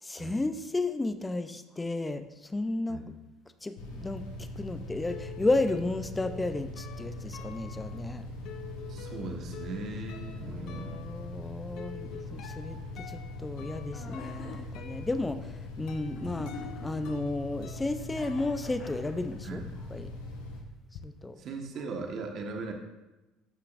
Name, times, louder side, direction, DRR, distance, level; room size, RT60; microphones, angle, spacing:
voice 1, 0.0-3.0 3.6-8.2 10.2-20.1 21.0-21.4 21.8-21.9, left 2 dB, 15° left, 10 dB, 0.6 m, -33 dB
sound 1, 3.8-20.6, left 1 dB, 85° left, 1.5 m, -41 dB
sound 2, 4.8-19.3 19.6-21.0, left 8 dB, 65° left, 0.8 m, -49 dB
voice 2, 8.9-11.0 16.1-16.4 19.4-19.7 21.4-22.7, right 3 dB, 55° right, 2 dB, 1.5 m, -39 dB
sound 3, 13.9-14.6 16.2-17.1 18.0-19.3, left 4 dB, 45° left, 2.1 m, -45 dB
13.0 x 5.7 x 2.6 m, 1.0 s
supercardioid pair, 85°, 0 cm